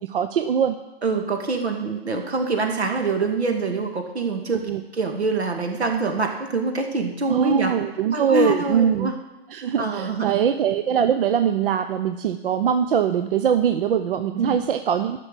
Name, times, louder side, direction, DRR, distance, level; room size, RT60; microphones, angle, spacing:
voice 1, 0.0-0.8 4.7-4.8 7.3-9.1 9.5-15.2, right 8 dB, 60° right, 9 dB, 0.7 m, -22 dB
voice 2, 1.0-4.6 4.9-7.7 8.1-9.2 9.8-10.4 14.4-14.6, right 3 dB, 85° right, 4 dB, 2.3 m, -25 dB
12.5 x 6.1 x 8.2 m, 0.97 s
hypercardioid pair, 140°, 32 cm